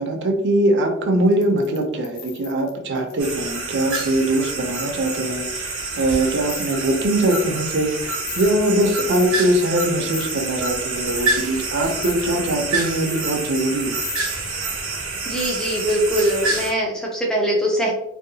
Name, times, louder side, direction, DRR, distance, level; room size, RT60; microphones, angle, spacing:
voice 1, 0.0-14.0, right 1 dB, 55° right, 3 dB, 0.5 m, -22 dB
sound 1, 1.3-3.4 6.5-6.8 7.2-7.5 7.8-7.9 8.3-8.5 9.0-9.6 10.1-10.5 11.0-11.7 12.0-12.4 13.0-13.7 14.0-14.2, left 9 dB, 70° left, 0.4 m, -36 dB
sound 2, 3.2-16.7, right 3 dB, 85° right, 0.8 m, -27 dB
voice 2, 15.3-17.9, equal, 5° left, -2 dB, 0.4 m, -22 dB
2.7 x 2.2 x 2.6 m, 0.83 s
head